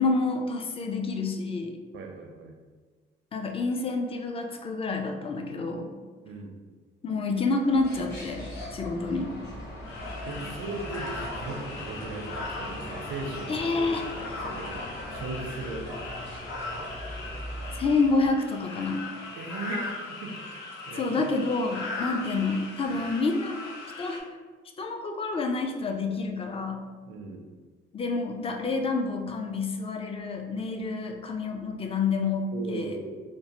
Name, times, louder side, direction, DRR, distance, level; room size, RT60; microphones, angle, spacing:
voice 1, 0.0-1.8 3.3-5.9 7.0-9.3 13.5-14.0 17.8-19.0 20.9-23.6 24.0-24.2 24.8-26.9 27.9-33.0, left 3 dB, 30° left, 4 dB, 0.4 m, -28 dB
voice 2, 1.9-2.6 6.2-6.5 10.3-14.8 15.1-16.2 19.3-20.3 20.9-21.2 22.9-23.1 27.1-27.5 32.5-33.2, right 3 dB, 80° right, 3 dB, 0.5 m, -38 dB
sound 1, 7.7-18.3, left 1 dB, 60° left, 0.9 m, -39 dB
sound 2, 9.8-24.2, left 3 dB, 85° left, 0.6 m, -39 dB
2.9 x 2.1 x 2.8 m, 1.4 s
cardioid pair, 90°, 20 cm